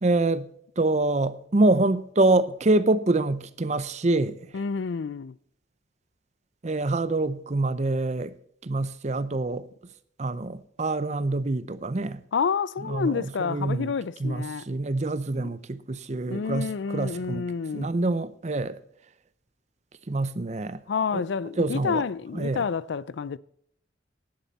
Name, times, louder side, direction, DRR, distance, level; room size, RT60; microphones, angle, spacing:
voice 1, 0.0-0.5 0.8-4.5 6.6-8.3 8.6-9.7 10.2-12.2 12.8-13.9 14.2-17.5 17.7-18.8 20.1-20.8 21.1-21.2 21.6-22.0 22.3-22.6, right 2 dB, 35° right, 0.6 m, -26 dB
voice 2, 4.5-5.4 12.3-14.6 16.3-17.9 20.9-23.4, left 5 dB, 70° left, 0.4 m, -29 dB
11.0 x 10.5 x 4.1 m
head